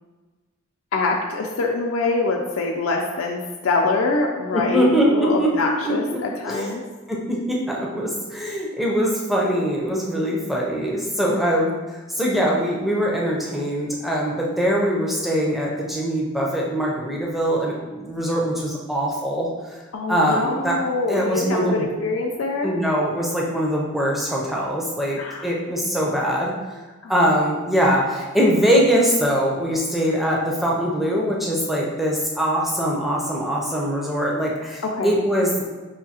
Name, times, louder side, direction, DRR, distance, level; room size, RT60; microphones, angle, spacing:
voice 1, 0.9-6.8 11.3-11.5 19.9-22.7 25.2-25.4 27.0-27.1 34.8-35.1, left 3 dB, 80° left, 0 dB, 0.4 m, -24 dB
voice 2, 4.5-5.5 5.9-6.8 7.1-19.5 20.1-20.8 21.1-21.9 22.6-26.5 27.1-35.6, equal, ahead, -3 dB, 0.4 m, -22 dB
5.6 x 2.6 x 2.7 m, 1.3 s
head